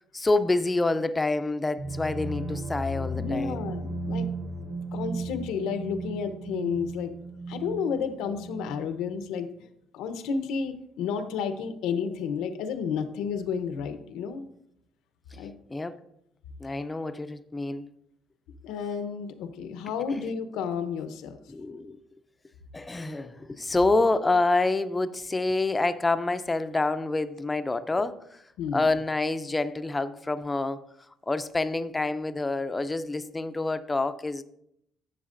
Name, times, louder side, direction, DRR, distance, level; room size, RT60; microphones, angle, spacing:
voice 1, 0.1-3.6 15.7-16.0 16.6-17.9 21.5-22.0 22.7-28.4 28.7-30.8 31.3-34.4, left 2 dB, 15° left, 0.4 m, -27 dB
sound 1, 1.8-9.5, right 2 dB, 25° right, 0.7 m, -35 dB
voice 2, 3.1-4.3 4.6-7.1 7.5-9.5 9.9-14.4 15.3-15.5 18.6-21.4 28.6-28.9, left 6 dB, 80° left, 0.8 m, -31 dB
11.0 x 7.3 x 2.5 m
cardioid pair, 155°, 0 cm